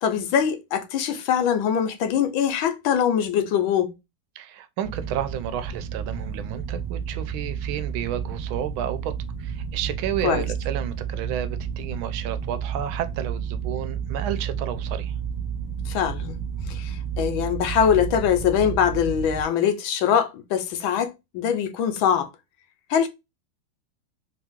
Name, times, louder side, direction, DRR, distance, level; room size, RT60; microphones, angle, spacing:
voice 1, 0.0-3.9 10.2-10.4 15.9-16.4 16.7-22.3 22.9-23.1, left 8 dB, 80° left, 1.5 m, -23 dB
voice 2, 4.4-9.1 9.4-15.1, right 10 dB, 85° right, 1.4 m, -31 dB
sound 1, 4.8-19.4, right 7 dB, 15° right, 1.0 m, -31 dB
4.4 x 2.9 x 3.5 m
omnidirectional pair, 2.2 m